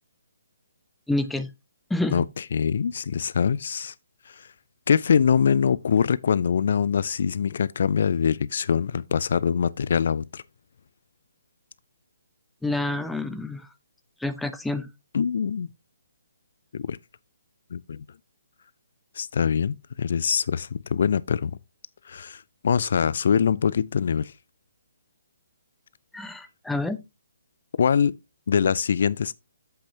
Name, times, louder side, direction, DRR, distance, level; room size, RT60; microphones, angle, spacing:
voice 1, 1.1-1.5 1.9-2.2 12.6-13.7 14.2-14.9 26.1-27.0, left 2 dB, 5° left, 0.5 m, -28 dB
voice 2, 2.1-3.9 4.3-4.5 4.9-10.4 15.1-15.7 16.7-17.0 17.7-18.0 19.2-21.6 22.1-24.3 27.8-28.1 28.5-29.3, left 7 dB, 55° left, 0.3 m, -23 dB
8.5 x 7.8 x 2.8 m
figure-of-eight pair, 135°, 0 cm